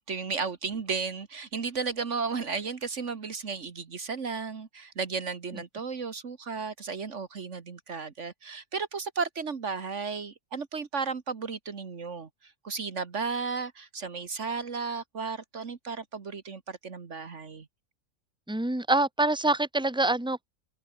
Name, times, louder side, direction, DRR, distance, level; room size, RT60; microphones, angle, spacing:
voice 1, 0.0-12.3 12.6-17.7, right 5 dB, 60° right, 1.9 m, -34 dB
voice 2, 18.5-20.5, right 2 dB, 5° right, 2.0 m, -25 dB
omnidirectional pair, 1.4 m